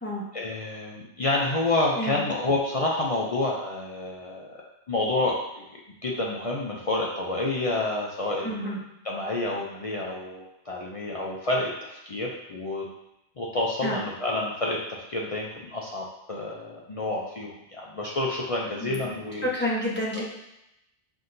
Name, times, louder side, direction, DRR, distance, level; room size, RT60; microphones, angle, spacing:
voice 1, 0.3-4.6 4.9-5.6 6.0-8.8 9.0-12.8 13.4-14.8 15.1-19.5 20.1-20.2, left 2 dB, 45° left, -3 dB, 0.4 m, -29 dB
voice 2, 8.4-8.8 13.8-14.0 18.8-19.1 19.4-20.2, equal, 10° left, -6 dB, 0.8 m, -29 dB
5.8 x 2.7 x 2.6 m, 0.87 s
omnidirectional pair, 1.1 m